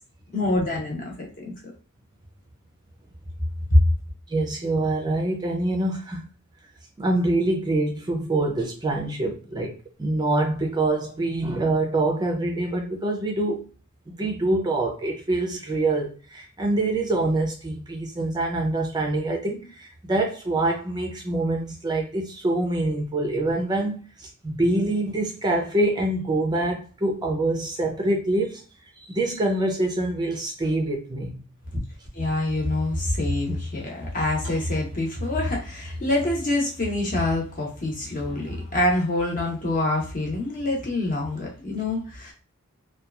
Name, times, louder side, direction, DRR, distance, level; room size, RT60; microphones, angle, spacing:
voice 1, 0.3-1.5 3.7-3.8 32.1-42.3, left 1 dB, 40° left, 0.9 m, -25 dB
voice 2, 4.3-6.3 7.0-13.6 14.1-28.6 29.0-31.4, right 2 dB, 20° right, 0.4 m, -25 dB
2.8 x 2.3 x 2.3 m
head